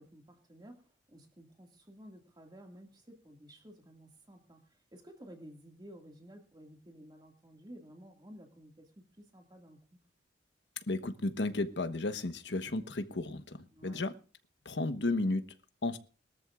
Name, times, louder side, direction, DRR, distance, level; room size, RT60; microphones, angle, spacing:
voice 1, 0.0-9.8 13.7-14.0, equal, 25° right, 2.1 m, -54 dB
voice 2, 10.9-14.1 14.6-15.4 15.8-16.0, left 2 dB, 80° left, 1.2 m, -33 dB
22.0 x 13.5 x 2.5 m
head